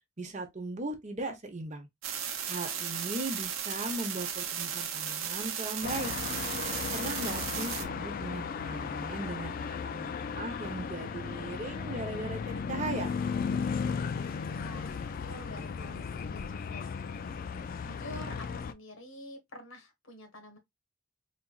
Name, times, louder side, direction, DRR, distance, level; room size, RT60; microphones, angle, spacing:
voice 1, 0.2-1.9 2.5-6.1 6.9-13.1, right 2 dB, 35° right, 0.8 m, -38 dB
sound 1, 2.0-7.8, right 8 dB, 90° right, 0.8 m, -35 dB
sound 2, 5.8-18.7, left 6 dB, 45° left, 0.3 m, -35 dB
voice 2, 14.5-20.6, equal, 75° left, 1.4 m, -48 dB
4.2 x 2.5 x 2.3 m
head